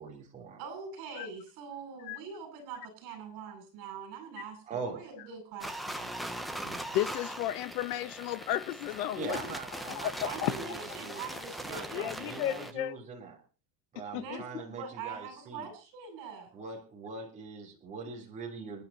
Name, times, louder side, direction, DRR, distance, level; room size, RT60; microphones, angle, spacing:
voice 1, 0.0-0.6 4.6-5.0 6.6-6.9 9.1-11.2 11.5-13.4 13.9-15.7 16.5-18.8, right 4 dB, 15° right, 3.7 m, -42 dB
voice 2, 0.6-6.1 10.2-12.1 14.1-16.6, right 5 dB, 50° right, 7.9 m, -43 dB
sound 1, 5.6-12.7, right 1 dB, ahead, 0.7 m, -40 dB
voice 3, 6.9-9.4 9.9-10.5 11.9-13.0 14.1-14.4, left 13 dB, 75° left, 1.2 m, -33 dB
29.0 x 10.5 x 2.9 m
cardioid pair, 170°, 47 cm